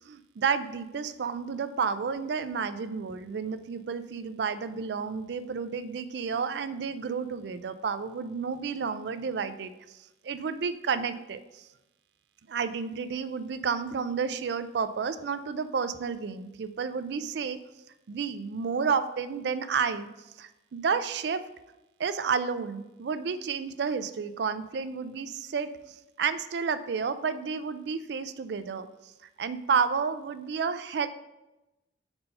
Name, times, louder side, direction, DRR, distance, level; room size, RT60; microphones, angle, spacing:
voice 1, 0.1-10.0 10.2-11.7 12.5-17.6 18.1-20.1 20.4-21.4 22.0-28.9 29.4-31.1, right 6 dB, 65° right, 12 dB, 0.4 m, -31 dB
5.3 x 4.4 x 5.3 m, 0.98 s
head